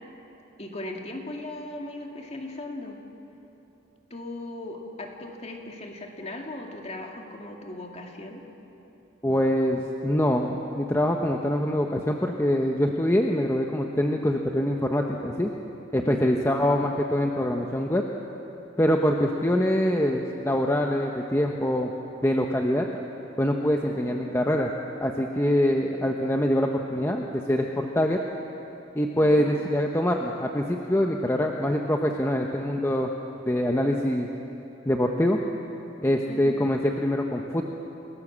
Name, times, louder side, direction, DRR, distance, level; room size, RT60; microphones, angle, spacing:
voice 1, 0.6-3.0 4.1-8.4 16.0-16.4 23.9-24.2 25.9-26.1 29.2-29.5 36.3-36.6, left 2 dB, 35° left, 1 dB, 2.4 m, -38 dB
voice 2, 9.2-15.5 15.9-18.0 18.8-21.9 22.2-22.9 23.4-24.7 25.0-28.2 28.9-33.1 33.5-34.3 34.9-35.4 36.0-37.8, left 1 dB, 15° left, 1 dB, 1.0 m, -24 dB
29.0 x 18.0 x 7.5 m, 3.0 s
head